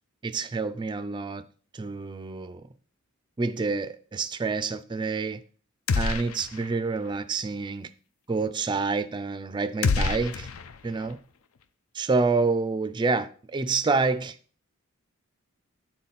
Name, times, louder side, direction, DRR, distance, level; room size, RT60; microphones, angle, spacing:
voice 1, 0.2-1.4 1.7-2.6 3.4-5.4 6.0-7.9 8.3-10.5 10.8-11.2 11.9-14.4, right 4 dB, 20° right, 0.3 m, -28 dB
sound 1, 5.9-6.8 7.1-7.2 9.8-11.1, left 4 dB, 70° left, 0.5 m, -27 dB
8.8 x 4.0 x 4.2 m
head